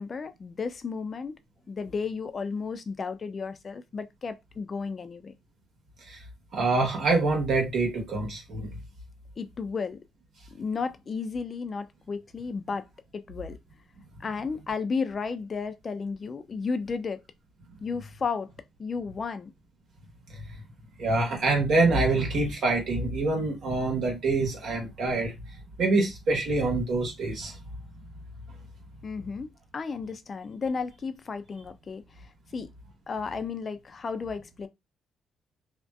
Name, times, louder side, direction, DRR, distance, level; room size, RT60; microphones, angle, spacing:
voice 1, 0.0-1.4 1.7-5.3 9.4-10.0 10.5-12.9 13.1-13.6 14.2-17.2 17.8-18.5 18.8-19.5 29.0-32.0 32.5-32.7 33.1-34.7, left 5 dB, 40° left, 0.4 m, -33 dB
voice 2, 6.5-8.7 20.3-20.4 21.0-25.4 25.8-27.6, right 3 dB, 65° right, 1.2 m, -25 dB
2.6 x 2.1 x 2.3 m
cardioid pair, 90°, 0 cm